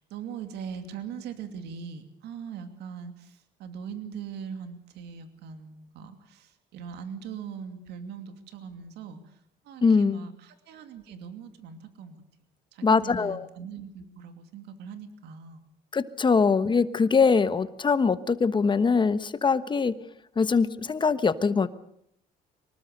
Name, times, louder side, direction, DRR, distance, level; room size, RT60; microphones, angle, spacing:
voice 1, 0.0-12.2 12.7-15.6, right 7 dB, 80° right, 8 dB, 2.6 m, -41 dB
voice 2, 9.8-10.2 12.8-13.5 15.9-19.9 20.4-21.7, left 5 dB, 30° left, 13 dB, 1.2 m, -22 dB
24.5 x 19.5 x 6.7 m, 0.73 s
cardioid pair, 110°, 17 cm